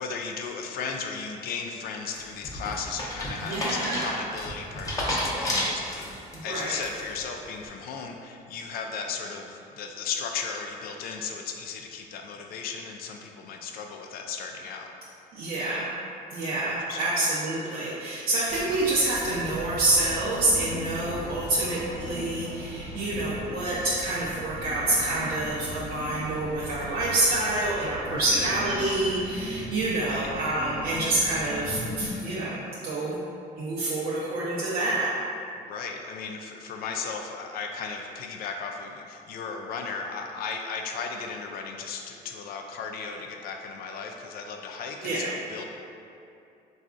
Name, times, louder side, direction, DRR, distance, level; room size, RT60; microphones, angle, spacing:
voice 1, 0.0-6.1 6.4-14.9 16.9-17.1 28.1-28.4 30.0-30.3 35.6-45.6, left 5 dB, 65° left, 3 dB, 0.4 m, -36 dB
sound 1, 2.1-6.3 6.8-7.2, left 1 dB, 20° left, 0.6 m, -31 dB
voice 2, 3.4-4.1 6.3-6.8 15.3-15.9 16.3-32.6 32.8-33.2 33.6-35.1 45.0-45.3, right 2 dB, 60° right, -8 dB, 0.5 m, -27 dB
sound 2, 18.5-32.2, left 1 dB, 35° left, 1.0 m, -38 dB
4.0 x 2.3 x 2.4 m, 2.6 s
cardioid pair, 110°, 17 cm